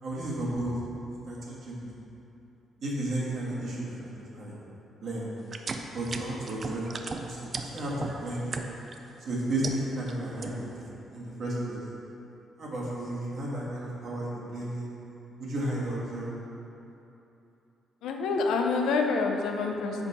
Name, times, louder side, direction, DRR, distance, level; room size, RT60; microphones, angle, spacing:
voice 1, 0.0-0.8 1.3-1.9 2.8-4.5 5.0-5.3 5.9-8.6 9.3-10.7 11.1-11.8 12.6-14.9 15.4-16.3, right 1 dB, 60° right, -5 dB, 1.4 m, -33 dB
sound 1, 5.4-9.0 9.4-10.1 10.4-10.8, right 4 dB, 40° right, 0.4 m, -36 dB
voice 2, 18.0-20.1, left 4 dB, 85° left, 2 dB, 0.5 m, -27 dB
5.2 x 4.5 x 4.1 m, 2.9 s
cardioid pair, 90°, 0 cm